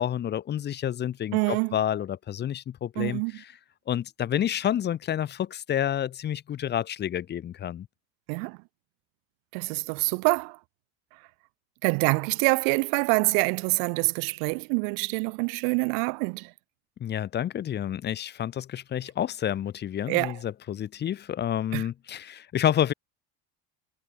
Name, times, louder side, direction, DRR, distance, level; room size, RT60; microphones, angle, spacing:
voice 1, 0.0-3.5 3.9-7.9 17.0-22.9, left 10 dB, 30° left, 1.3 m, -29 dB
voice 2, 1.3-1.7 3.0-3.3 8.3-8.6 9.5-10.6 11.8-16.5 20.1-20.4 21.7-21.8, right 40 dB or more, 80° right, 1.2 m, -26 dB
cardioid pair, 145°, 33 cm